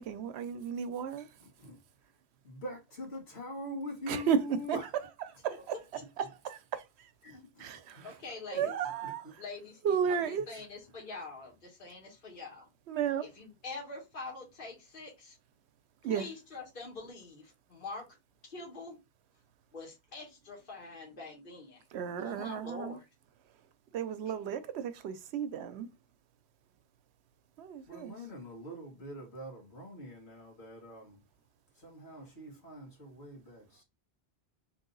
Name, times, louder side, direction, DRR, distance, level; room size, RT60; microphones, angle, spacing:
voice 1, 0.0-1.3 4.1-4.4 4.7-4.8 5.4-5.8 6.2-7.1 7.6-8.2 8.5-9.2 9.8-10.5 12.9-13.3 16.0-16.3 21.9-23.0 23.9-25.9 27.6-28.1, right 8 dB, 90° right, 0.9 m, -33 dB
voice 2, 1.4-1.8 2.4-4.9 7.3-8.4 9.0-9.1 27.9-31.2 31.7-33.8, equal, 80° left, 1.9 m, -44 dB
voice 3, 8.0-8.8 9.4-10.2 10.5-12.7 13.2-15.4 16.1-18.0 18.4-19.0 19.7-21.8 22.2-23.0, left 3 dB, 55° left, 1.6 m, -45 dB
3.5 x 2.8 x 3.8 m
omnidirectional pair, 1.1 m